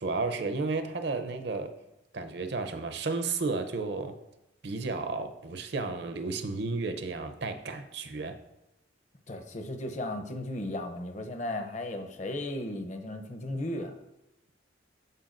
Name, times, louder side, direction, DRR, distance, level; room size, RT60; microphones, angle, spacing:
voice 1, 0.0-1.7 2.1-4.1 4.6-8.4, right 3 dB, 60° right, 9 dB, 0.6 m, -32 dB
voice 2, 9.3-13.9, left 1 dB, 40° left, 6 dB, 0.7 m, -35 dB
13.0 x 4.6 x 2.5 m, 0.90 s
head